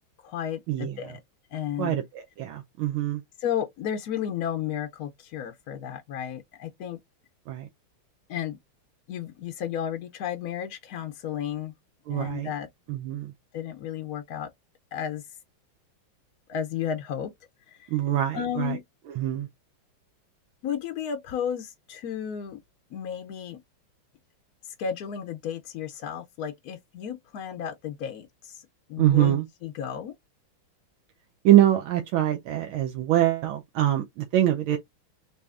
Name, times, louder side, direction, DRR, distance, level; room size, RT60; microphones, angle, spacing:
voice 1, 0.2-1.2 1.5-2.0 3.4-7.0 8.3-8.6 9.1-11.7 12.1-12.7 13.5-14.5 14.9-15.2 16.5-17.3 17.7-17.9 18.3-18.8 20.6-22.6 22.9-23.6 24.7-30.1, left 9 dB, 70° left, 0.9 m, -33 dB
voice 2, 1.8-3.2 7.5-7.7 12.1-12.5 12.9-13.3 17.9-18.8 19.2-19.5 29.0-29.5 31.4-34.8, right 13 dB, 80° right, 1.5 m, -24 dB
6.5 x 2.8 x 2.5 m
omnidirectional pair, 2.3 m